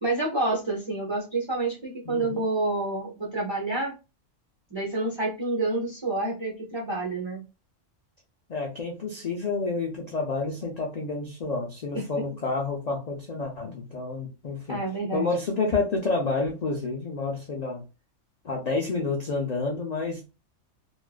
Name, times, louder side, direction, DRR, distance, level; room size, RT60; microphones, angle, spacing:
voice 1, 0.0-3.9 4.7-7.4 14.7-15.3, right 2 dB, 40° right, -3 dB, 0.4 m, -28 dB
voice 2, 2.1-2.4 8.5-14.8 15.1-17.8 18.4-20.3, left 3 dB, 70° left, 0 dB, 0.4 m, -29 dB
2.4 x 2.3 x 2.2 m, 0.29 s
omnidirectional pair, 1.3 m